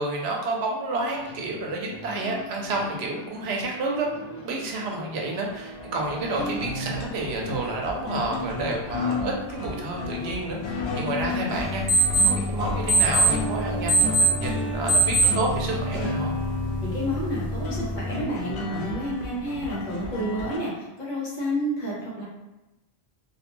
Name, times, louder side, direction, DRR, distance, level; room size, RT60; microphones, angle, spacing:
voice 1, 0.0-4.1 4.4-11.8 12.2-16.3, right 2 dB, 90° right, 0 dB, 0.8 m, -30 dB
sound 1, 0.9-20.6, left 2 dB, 90° left, 0.8 m, -33 dB
sound 2, 11.6-18.1, right 2 dB, 35° right, 0.5 m, -24 dB
voice 2, 16.8-22.2, equal, 50° left, -6 dB, 0.9 m, -30 dB
2.4 x 2.1 x 3.0 m, 0.99 s
omnidirectional pair, 1.1 m